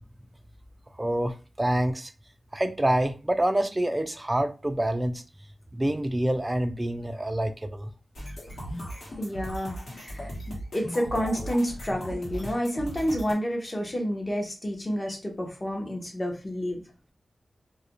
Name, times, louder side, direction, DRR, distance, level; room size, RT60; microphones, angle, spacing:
voice 1, 1.0-2.1 2.5-5.2 5.7-7.9, right 1 dB, 20° right, 0.3 m, -27 dB
sound 1, 8.1-13.3, equal, 75° left, 1.1 m, -37 dB
voice 2, 9.2-16.8, equal, 30° left, 0.7 m, -30 dB
2.4 x 2.1 x 2.9 m
wide cardioid pair, 90°, 0 cm